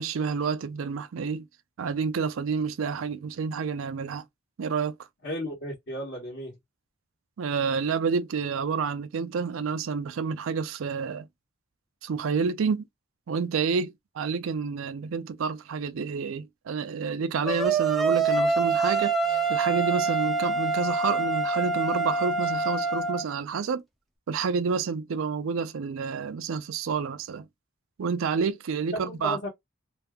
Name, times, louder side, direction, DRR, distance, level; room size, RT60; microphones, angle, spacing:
voice 1, 0.0-1.4 1.8-4.2 4.6-4.9 7.4-11.3 12.0-12.8 13.3-19.2 19.5-23.8 24.3-27.5 28.0-29.4, right 5 dB, 75° right, 0.4 m, -29 dB
voice 2, 5.2-6.5 28.9-29.5, left 1 dB, 55° left, 1.2 m, -34 dB
sound 1, 17.5-23.2, right 4 dB, ahead, 0.4 m, -25 dB
2.6 x 2.3 x 3.5 m
head